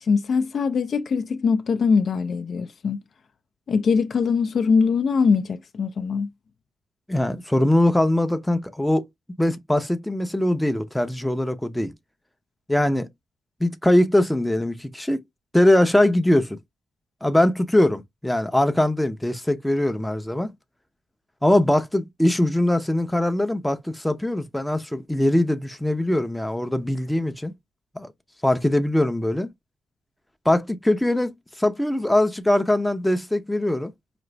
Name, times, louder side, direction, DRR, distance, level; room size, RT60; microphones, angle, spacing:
voice 1, 0.0-3.0 3.7-6.3, left 5 dB, 50° left, 0.5 m, -22 dB
voice 2, 7.1-9.1 9.4-11.9 12.7-13.1 13.6-15.2 15.5-16.6 17.2-20.5 21.4-27.5 27.9-28.1 28.4-29.5 30.4-33.9, left 1 dB, 5° left, 0.6 m, -21 dB
5.0 x 2.4 x 3.3 m
cardioid pair, 125°, 0 cm